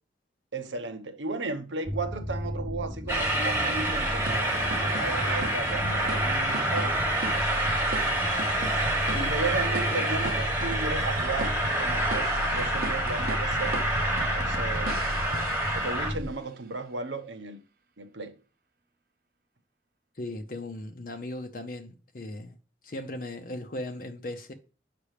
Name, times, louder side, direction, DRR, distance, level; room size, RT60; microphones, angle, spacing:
voice 1, 0.5-7.0 9.1-13.7 14.3-15.3 15.7-17.6 18.0-18.4, right 3 dB, 85° right, 1.0 m, -35 dB
sound 1, 1.8-16.3, equal, 5° left, 0.4 m, -34 dB
Train, 3.1-16.1, right 1 dB, 10° right, 1.2 m, -28 dB
sound 2, 4.3-16.2, right 2 dB, 50° right, 0.7 m, -39 dB
voice 2, 9.9-10.3 20.1-22.6 22.8-24.5, left 1 dB, 50° left, 0.7 m, -37 dB
8.4 x 6.0 x 3.3 m
head